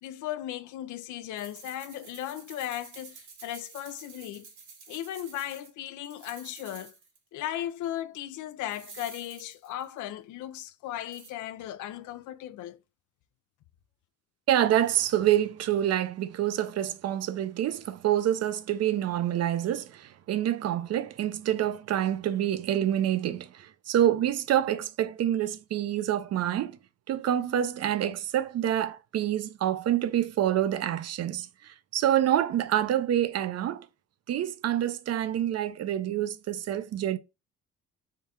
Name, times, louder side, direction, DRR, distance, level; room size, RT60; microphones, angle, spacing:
voice 1, 0.0-4.5 4.9-7.0 7.3-12.8, left 12 dB, 80° left, 0.5 m, -36 dB
sound 1, 1.4-5.7 6.0-7.2 7.4-7.5 8.7-10.0 11.1-11.3, right 5 dB, 75° right, 1.5 m, -49 dB
voice 2, 14.5-26.8 27.1-33.9 34.3-37.2, right 11 dB, 55° right, 0.5 m, -27 dB
3.7 x 2.4 x 4.1 m
cardioid pair, 90°, 30 cm